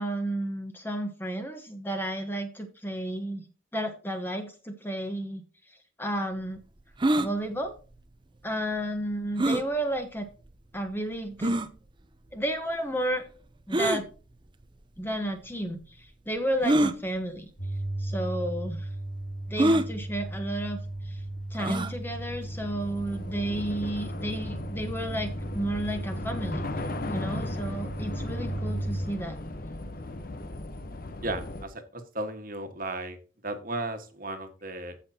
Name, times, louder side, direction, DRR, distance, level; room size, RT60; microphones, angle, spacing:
voice 1, 0.0-5.4 6.0-6.6 7.1-7.7 8.4-10.3 10.7-11.6 12.3-13.2 13.7-14.0 15.0-17.5 18.0-18.9 19.5-20.8 21.0-21.2 21.5-29.4, right 1 dB, 10° left, 5 dB, 1.1 m, -32 dB
sound 1, 7.0-7.3 9.4-9.7 10.5-10.6 11.4-11.7 13.7-14.0 15.1-15.2 16.6-16.9 17.9-18.0 18.3-18.4 19.6-19.9 21.6-21.9, right 1 dB, 25° right, 0.6 m, -24 dB
sound 2, 17.6-29.0, right 1 dB, 85° left, 2.2 m, -36 dB
Train / Subway metro underground, 18.7-31.7, left 2 dB, 45° left, 0.9 m, -38 dB
voice 2, 31.2-33.2 33.4-35.0, right 2 dB, 45° right, 7 dB, 1.5 m, -35 dB
15.0 x 5.7 x 2.8 m, 0.36 s
head